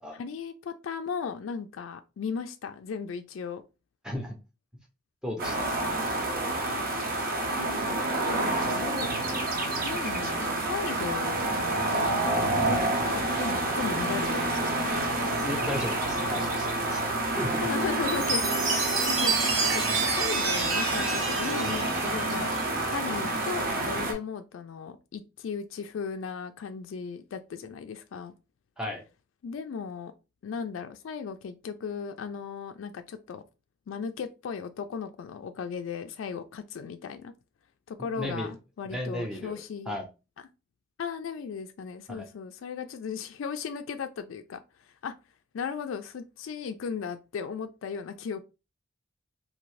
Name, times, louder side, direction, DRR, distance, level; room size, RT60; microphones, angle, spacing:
voice 1, 0.1-3.6 6.6-11.5 11.9-12.6 13.1-15.1 17.6-22.5 22.9-28.3 29.4-30.1 30.4-33.4 33.9-37.3 37.9-40.0 41.0-45.2 45.5-48.4, left 6 dB, 75° left, 0.3 m, -37 dB
voice 2, 4.0-4.4 5.2-5.7 15.4-17.1 17.4-17.6 28.8-29.0 38.2-38.5 38.9-39.6 39.9-40.0 42.1-42.3, left 1 dB, 5° right, 0.7 m, -34 dB
sound 1, 5.4-24.1, right 2 dB, 45° right, 0.7 m, -28 dB
Chime, 18.1-22.7, right 4 dB, 90° right, 0.9 m, -29 dB
2.7 x 2.6 x 3.1 m
head